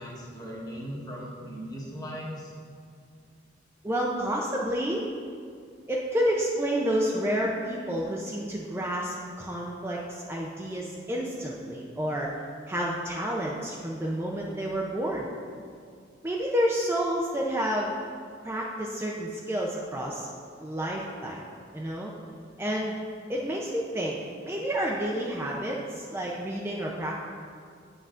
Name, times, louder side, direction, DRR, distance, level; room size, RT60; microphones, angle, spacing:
voice 1, 0.0-2.5 23.3-23.4, equal, 20° left, -4 dB, 1.1 m, -38 dB
voice 2, 3.8-5.1 5.9-12.3 12.7-15.3 16.2-17.9 18.4-20.3 20.6-21.4 21.7-22.1 22.6-23.0 23.3-24.2 24.4-27.2, equal, 15° right, -3 dB, 0.4 m, -29 dB
9.0 x 5.5 x 2.4 m, 2.3 s
head